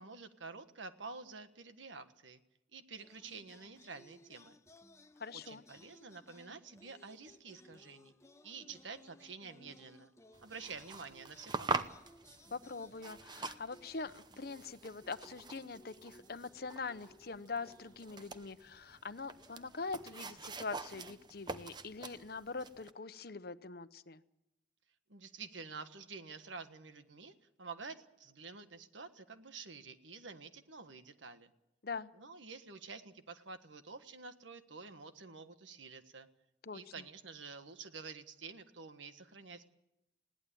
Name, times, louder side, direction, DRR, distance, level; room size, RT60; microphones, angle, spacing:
voice 1, 0.0-2.4 2.7-4.6 5.3-8.1 8.4-10.1 10.4-11.9 25.1-31.5 32.2-36.3 36.7-39.7, right 4 dB, 90° right, 9 dB, 1.5 m, -49 dB
sound 1, 3.0-19.0 19.4-22.8, left 1 dB, 15° left, 0.7 m, -62 dB
voice 2, 5.2-5.6 12.5-24.2 31.8-32.1 36.6-36.8, left 4 dB, 55° left, 12 dB, 0.9 m, -43 dB
sound 2, 10.3-22.9, right 3 dB, 25° right, 0.8 m, -45 dB
20.5 x 17.0 x 8.6 m, 0.87 s
head